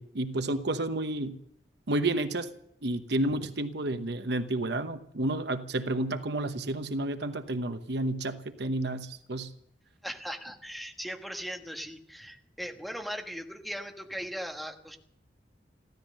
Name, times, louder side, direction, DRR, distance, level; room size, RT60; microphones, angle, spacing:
voice 1, 0.0-1.4 1.9-2.5 2.8-9.5, right 2 dB, 65° right, 9 dB, 1.0 m, -31 dB
voice 2, 10.0-15.0, equal, ahead, 4 dB, 1.3 m, -39 dB
15.5 x 13.5 x 6.6 m, 0.71 s
head